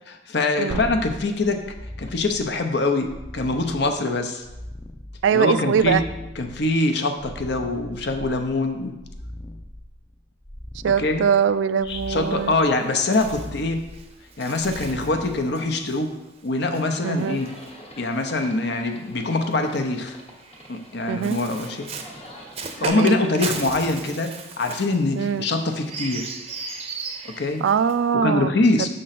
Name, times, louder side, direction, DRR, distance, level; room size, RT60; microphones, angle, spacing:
voice 1, 0.1-1.6 2.0-4.5 5.3-6.0 6.4-8.9 11.0-11.3 11.9-13.8 14.4-16.1 16.4-17.5 18.0-20.2 20.7-21.9 22.8-26.3 27.2-27.6 28.1-28.9, left 2 dB, 65° left, 5 dB, 0.7 m, -24 dB
sound 1, 0.7-16.0 19.1-19.2, left 1 dB, 15° left, 0.5 m, -39 dB
voice 2, 5.2-6.0 10.8-12.5 17.0-17.4 21.1-21.4 22.8-23.2 25.2-25.4 27.6-28.5 28.8-28.9, right 7 dB, 80° right, 15 dB, 0.3 m, -22 dB
Bird, 11.9-18.4 19.4-28.2, right 4 dB, 35° right, 0.6 m, -37 dB
Livestock farm animals working animals, 16.9-22.9, equal, 30° left, 1.0 m, -45 dB
6.6 x 3.8 x 5.8 m, 1.0 s
head